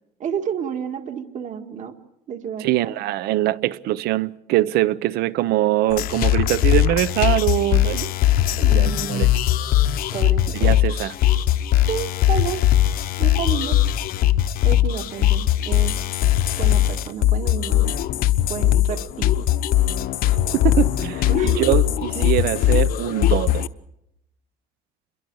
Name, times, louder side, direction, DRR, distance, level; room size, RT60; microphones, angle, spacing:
voice 1, 0.2-2.0 2.3-2.9 8.7-9.3 10.1-10.8 11.9-12.6 13.2-13.8 14.6-15.9 16.6-17.9 18.5-19.4 21.3-21.8 22.2-22.3, right 8 dB, 45° right, 1.9 m, -30 dB
voice 2, 2.6-8.1 8.6-9.3 10.5-11.2 20.5-23.7, right 15 dB, 70° right, 0.8 m, -23 dB
sound 1, 5.9-23.7, left 13 dB, 60° left, 0.9 m, -20 dB
28.5 x 22.5 x 4.8 m
cardioid pair, 150°, 17 cm